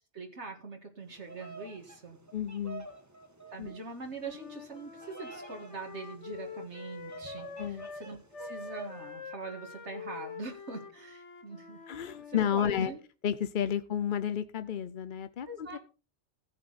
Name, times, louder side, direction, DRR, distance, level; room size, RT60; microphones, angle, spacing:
voice 1, 0.1-2.2 3.5-13.0 15.5-15.8, right 3 dB, 75° right, 3 dB, 2.2 m, -43 dB
Bird vocalization bird call bird song, 1.1-9.1, right 2 dB, 15° right, 1.4 m, -49 dB
voice 2, 2.3-2.9 3.6-3.7 7.6-7.9 11.9-12.9 13.2-15.8, left 9 dB, 50° left, 13 dB, 0.8 m, -31 dB
Wind instrument woodwind instrument, 4.2-8.1 8.3-12.6, left 5 dB, 90° left, 1.8 m, -46 dB
15.0 x 8.7 x 4.1 m, 0.33 s
omnidirectional pair, 1.2 m